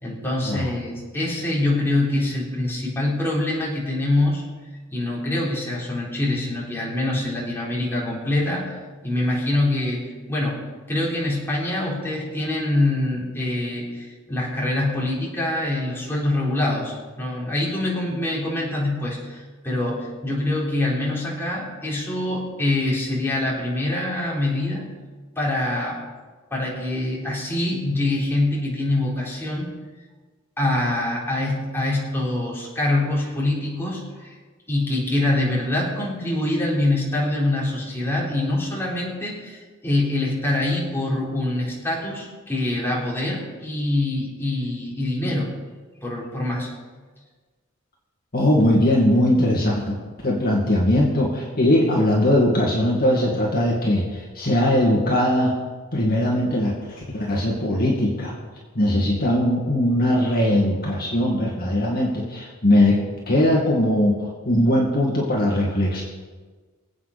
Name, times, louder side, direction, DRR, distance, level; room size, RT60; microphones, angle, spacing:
voice 1, 0.0-4.4 4.9-24.9 25.4-26.0 26.5-29.7 30.6-34.3 34.7-45.5 46.0-46.7, left 1 dB, 10° left, -5 dB, 4.0 m, -25 dB
voice 2, 48.3-50.0 50.2-55.5 55.9-58.3 58.7-66.0, left 1 dB, 45° left, -3 dB, 2.3 m, -20 dB
25.5 x 8.6 x 4.3 m, 1.4 s
head